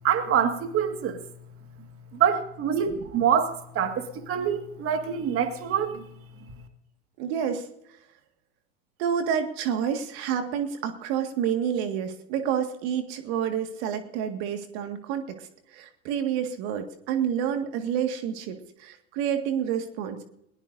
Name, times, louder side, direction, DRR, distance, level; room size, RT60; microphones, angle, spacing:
voice 1, 0.0-1.2 2.1-6.0 6.5-6.6, right 8 dB, 40° right, 7 dB, 1.9 m, -25 dB
voice 2, 7.2-7.7 9.0-20.2, right 8 dB, 60° right, 6 dB, 1.9 m, -29 dB
21.0 x 18.5 x 2.7 m, 0.76 s
hypercardioid pair, 90°, 36 cm